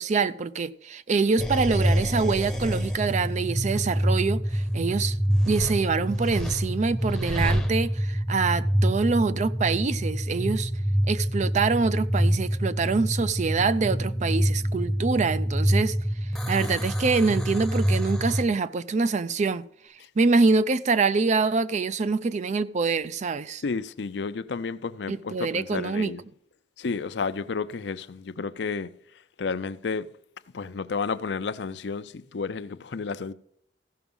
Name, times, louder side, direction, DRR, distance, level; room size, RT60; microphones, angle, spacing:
voice 1, 0.0-5.2 5.5-10.7 11.1-16.0 16.5-19.7 20.2-23.6 25.1-26.1, right 4 dB, 40° right, 0.4 m, -25 dB
sound 1, 1.4-18.4, equal, ahead, 0.8 m, -26 dB
Bass guitar, 13.6-19.9, right 2 dB, 60° right, 4.1 m, -56 dB
voice 2, 23.6-26.2 26.8-28.9 29.4-30.1 30.5-33.3, left 4 dB, 70° left, 0.5 m, -31 dB
15.0 x 6.0 x 5.4 m
head